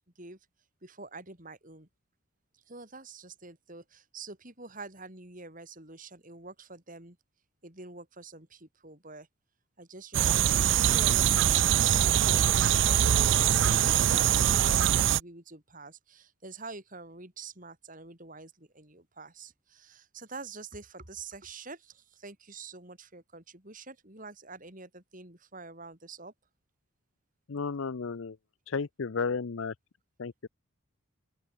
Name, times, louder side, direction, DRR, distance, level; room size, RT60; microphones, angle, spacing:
voice 1, 0.8-1.9 2.5-7.2 7.6-9.3 9.8-11.8 12.1-26.3, right 3 dB, 35° right, 4.0 m, -46 dB
sound 1, 10.1-15.2, right 10 dB, 55° right, 0.4 m, -23 dB
voice 2, 27.5-28.4 28.7-29.7 30.2-30.5, left 5 dB, 65° left, 0.6 m, -33 dB
open air
head